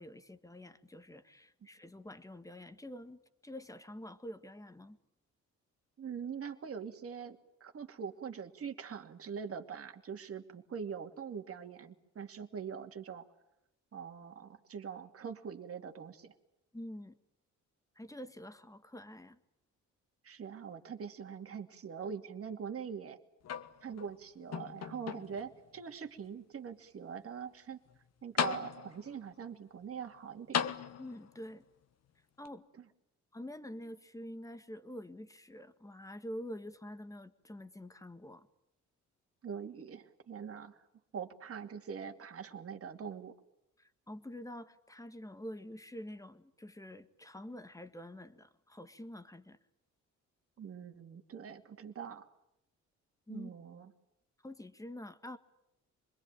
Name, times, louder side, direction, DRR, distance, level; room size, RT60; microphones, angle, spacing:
voice 1, 0.0-5.0 16.7-17.2 18.0-19.4 31.0-31.6 32.4-32.7 33.3-38.5 43.8-49.6 53.3-53.5 54.4-55.4, left 1 dB, 10° left, 9 dB, 1.8 m, -47 dB
voice 2, 6.0-13.2 13.9-16.3 20.2-23.2 23.8-27.8 28.2-30.6 39.4-40.8 41.1-43.3 50.6-52.3 53.3-53.9, right 7 dB, 50° right, 5 dB, 2.6 m, -43 dB
sound 1, 23.4-24.1 24.5-25.5 26.2-26.3 27.9-28.0 28.4-29.1 30.5-31.4 32.5-32.6, left 7 dB, 60° left, 1.4 m, -36 dB
26.0 x 21.5 x 9.2 m, 0.82 s
cardioid pair, 90°, 30 cm